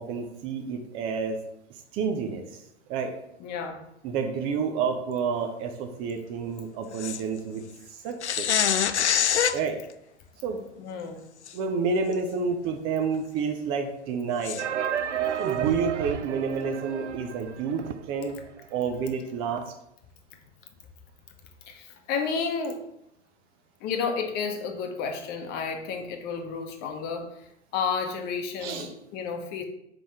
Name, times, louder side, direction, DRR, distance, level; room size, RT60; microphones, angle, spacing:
voice 1, 0.0-1.4 1.9-2.6 2.9-3.1 4.0-7.6 8.0-8.5 9.5-9.8 10.4-10.6 11.5-14.7 15.4-17.8 18.1-18.4 18.7-19.6 28.6-28.9, right 5 dB, 15° right, 4 dB, 0.4 m, -29 dB
voice 2, 3.4-3.8 10.8-11.2 21.7-22.8 23.8-27.5 27.7-29.6, left 5 dB, 30° left, 5 dB, 0.9 m, -31 dB
sound 1, 7.0-7.2 8.2-9.6 11.5-11.6 12.1-12.2 14.4-14.6, left 9 dB, 75° left, 0.5 m, -24 dB
sound 2, 14.6-18.3 18.6-18.7 18.9-19.0 19.6-19.7, right 9 dB, 75° right, 0.5 m, -31 dB
4.8 x 3.8 x 5.6 m, 0.78 s
figure-of-eight pair, 100°, 35 cm